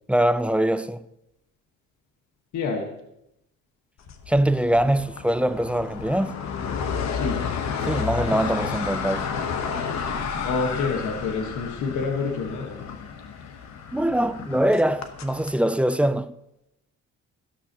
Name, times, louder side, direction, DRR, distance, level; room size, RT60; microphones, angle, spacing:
voice 1, 0.1-1.1 4.3-6.4 7.9-9.3 13.9-16.3, right 1 dB, 5° right, 0.4 m, -23 dB
voice 2, 2.5-2.9 7.1-7.5 10.4-12.8, left 4 dB, 80° left, 1.5 m, -27 dB
sound 1, 4.1-15.5, left 6 dB, 65° left, 1.2 m, -31 dB
13.0 x 11.5 x 3.0 m
cardioid pair, 90°, 30 cm